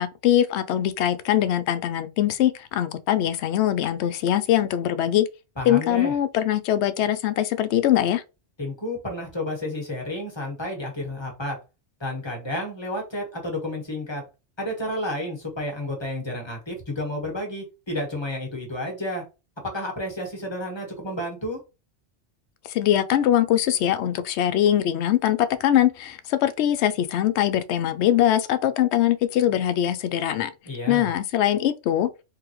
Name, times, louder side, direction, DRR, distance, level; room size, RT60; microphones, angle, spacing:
voice 1, 0.0-5.3 5.7-8.2 22.7-30.5 30.9-32.1, left 11 dB, 70° left, 0.8 m, -22 dB
voice 2, 5.6-6.1 8.6-11.6 12.0-14.2 14.6-19.2 19.6-21.6 30.6-31.1, left 1 dB, 25° left, 1.4 m, -31 dB
3.7 x 3.2 x 3.0 m
omnidirectional pair, 1.2 m